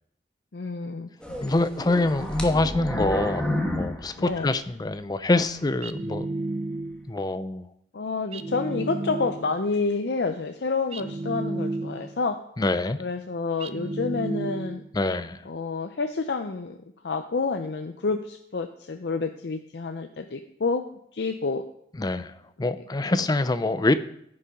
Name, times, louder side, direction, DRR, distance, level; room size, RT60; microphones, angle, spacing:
voice 1, 0.5-1.4 4.2-4.5 7.9-12.4 13.0-14.8 15.5-16.8 17.0-20.8 21.1-21.6 23.1-23.2, left 4 dB, 70° left, 0.6 m, -29 dB
sound 1, 1.2-5.0 5.4-5.5 6.1-6.3, left 1 dB, 5° left, 1.2 m, -30 dB
voice 2, 1.4-6.3 7.1-7.7 12.6-13.0 14.9-15.4 22.0-22.3 22.6-23.9, left 2 dB, 25° left, 0.5 m, -25 dB
sound 2, 5.8-7.2 8.3-9.7 10.9-12.3 13.6-15.0, right 2 dB, 35° right, 0.5 m, -32 dB
13.5 x 5.5 x 5.3 m
head